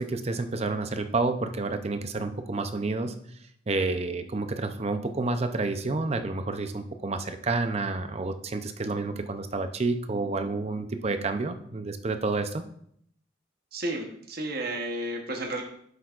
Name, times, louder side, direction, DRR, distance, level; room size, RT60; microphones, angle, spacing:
voice 1, 0.0-3.1 3.7-12.6, right 3 dB, 35° right, 8 dB, 0.6 m, -29 dB
voice 2, 13.7-15.6, right 1 dB, 50° right, 2 dB, 1.0 m, -32 dB
10.5 x 7.9 x 2.5 m, 0.70 s
head